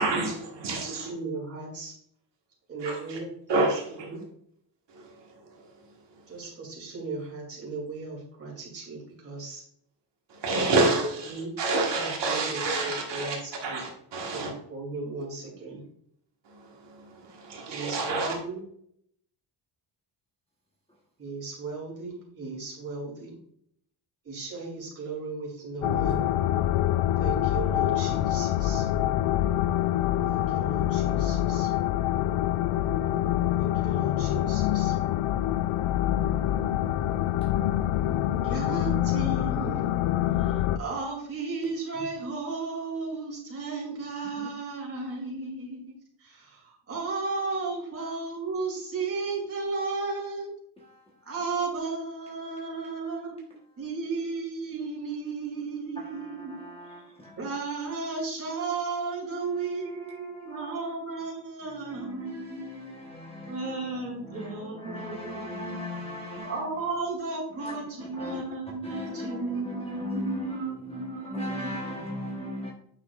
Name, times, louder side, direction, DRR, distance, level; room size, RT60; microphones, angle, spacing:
voice 1, 0.0-1.1 2.8-3.2 3.5-4.1 5.0-5.1 10.3-13.4 13.6-14.5 16.5-18.3, right 2 dB, 55° right, 1.6 m, -28 dB
voice 2, 0.8-1.9 2.7-3.7 4.0-4.2 6.3-9.6 11.3-11.5 11.9-13.8 14.3-15.8 17.7-18.6 21.2-23.4 24.2-26.2 27.2-28.8 30.3-31.7 33.6-34.9 38.4-39.9 40.4-45.9 46.2-50.5 51.2-53.4 53.8-56.7 57.4-62.9 63.5-65.7 66.4-72.6, right 3 dB, 25° right, 3.0 m, -35 dB
sound 1, 25.8-40.8, left 12 dB, 85° left, 0.6 m, -26 dB
voice 3, 56.0-57.4 59.5-60.7 61.6-66.7 67.6-68.4 68.8-72.7, left 1 dB, 10° left, 1.1 m, -39 dB
8.9 x 6.1 x 2.4 m
cardioid pair, 175°, 50 cm